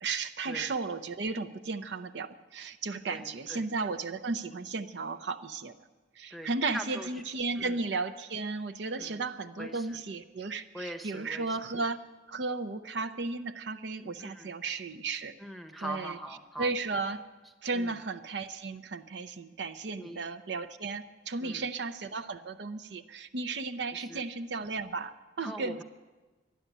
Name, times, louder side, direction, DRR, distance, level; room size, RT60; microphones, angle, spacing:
voice 1, 0.0-5.7 6.2-15.3 15.8-16.2 16.6-17.2 17.6-25.8, right 3 dB, 65° right, 8 dB, 0.6 m, -34 dB
voice 2, 3.1-3.7 6.3-7.2 7.6-7.8 9.0-9.2 9.6-10.0 10.7-11.6 14.2-14.5 15.4-16.7 17.7-18.0 20.0-20.2 21.4-21.7 23.9-24.2 25.4-25.8, right 1 dB, ahead, 7 dB, 0.9 m, -42 dB
12.0 x 11.5 x 9.2 m, 1.2 s
head